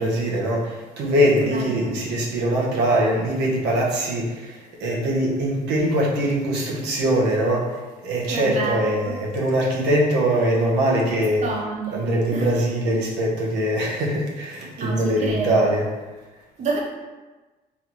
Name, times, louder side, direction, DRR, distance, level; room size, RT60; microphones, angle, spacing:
voice 1, 0.0-11.4 11.9-15.9, right 1 dB, 85° right, -2 dB, 0.9 m, -22 dB
voice 2, 1.4-2.0 8.3-9.1 11.4-12.1 12.3-12.5 14.8-15.7 16.6-16.8, right 4 dB, 45° right, -1 dB, 0.6 m, -28 dB
3.9 x 3.1 x 3.0 m, 1.2 s
cardioid pair, 110°, 17 cm